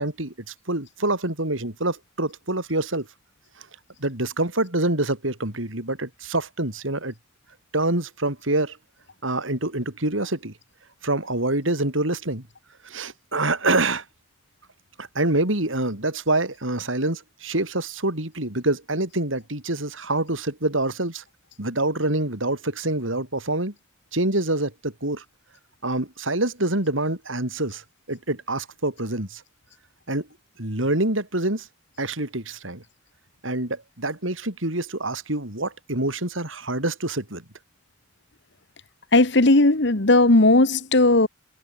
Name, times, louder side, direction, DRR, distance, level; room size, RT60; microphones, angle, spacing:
voice 1, 0.0-3.1 3.6-3.7 4.0-7.1 7.7-8.8 9.2-10.5 11.0-12.4 12.8-14.0 15.0-21.2 21.6-23.7 24.1-25.2 25.8-29.4 30.1-30.3 30.6-31.7 32.0-32.8 33.4-37.4, right 2 dB, 80° right, 5.3 m, -26 dB
voice 2, 39.1-41.3, left 2 dB, 60° left, 1.6 m, -16 dB
head